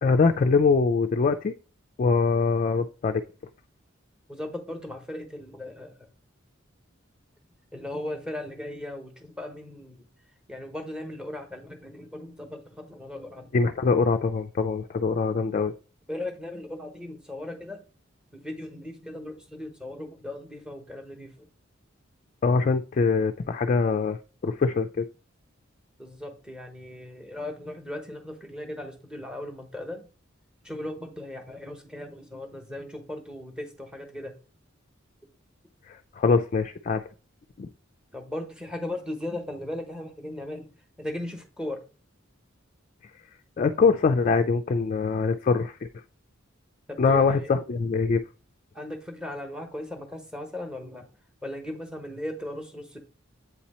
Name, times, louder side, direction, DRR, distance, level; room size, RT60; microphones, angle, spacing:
voice 1, 0.0-1.5 2.0-3.2 13.5-15.7 22.4-24.2 24.4-25.0 35.9-37.0 37.6-37.7 43.6-45.8 47.0-48.2, left 4 dB, 40° left, 0.3 m, -23 dB
voice 2, 4.3-5.9 7.7-10.1 10.5-13.5 16.1-17.8 18.3-21.5 26.0-30.1 30.6-34.4 38.1-41.9 46.9-47.5 48.7-51.1 51.4-53.0, left 1 dB, 5° right, 1.0 m, -37 dB
8.0 x 2.8 x 4.2 m
head